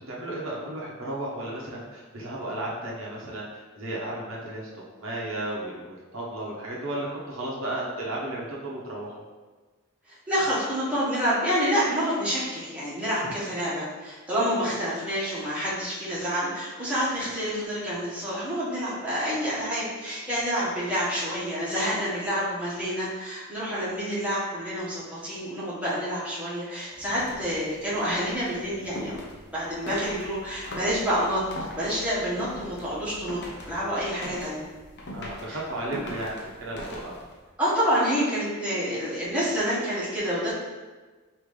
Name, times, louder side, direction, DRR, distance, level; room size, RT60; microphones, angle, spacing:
voice 1, 0.1-9.1 35.1-37.2, right 1 dB, 70° right, -5 dB, 1.0 m, -34 dB
voice 2, 10.1-29.2 29.5-31.4 31.7-34.6 35.5-35.6 37.6-40.5, equal, 5° right, -10 dB, 1.4 m, -28 dB
sound 1, 26.9-37.5, left 1 dB, 55° left, 0.7 m, -41 dB
5.2 x 2.9 x 3.2 m, 1.3 s
head